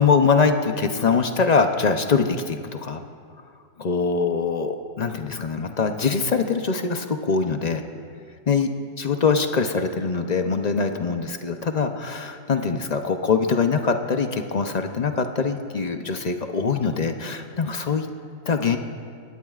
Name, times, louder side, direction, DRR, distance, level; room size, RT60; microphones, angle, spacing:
voice 1, 0.0-3.0 3.8-7.8 8.5-8.7 9.0-18.1 18.5-18.8, left 5 dB, 40° left, 6 dB, 0.6 m, -23 dB
23.0 x 18.0 x 2.4 m, 2.2 s
omnidirectional pair, 1.4 m